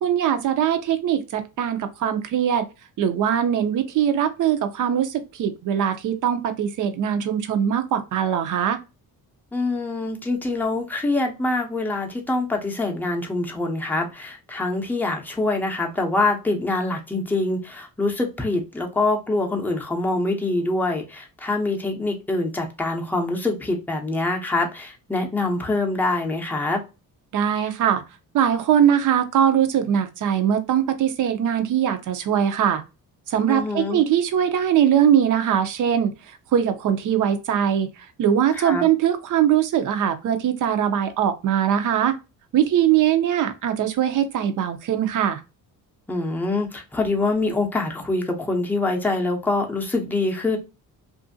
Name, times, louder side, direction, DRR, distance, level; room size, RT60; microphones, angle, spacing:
voice 1, 0.0-2.7 3.0-8.8 27.3-28.0 28.3-32.8 33.3-36.1 36.5-37.9 38.2-42.2 42.5-45.4, right 9 dB, 60° right, 0.6 m, -21 dB
voice 2, 9.5-26.8 33.5-34.0 38.5-38.8 46.1-50.6, left 2 dB, 5° left, 0.6 m, -25 dB
2.6 x 2.5 x 2.6 m
cardioid pair, 130°, 35 cm